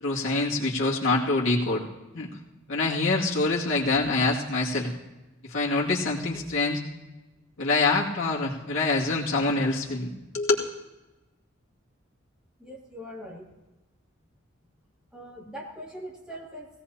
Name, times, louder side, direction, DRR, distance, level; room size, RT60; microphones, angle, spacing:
voice 1, 0.0-1.8 2.1-2.3 2.7-4.9 5.5-6.8 7.6-10.1 10.3-10.5, left 3 dB, 70° left, -4 dB, 2.2 m, -25 dB
voice 2, 12.6-13.4 15.1-16.7, equal, 5° right, -4 dB, 2.5 m, -41 dB
19.0 x 17.0 x 2.9 m, 1.1 s
head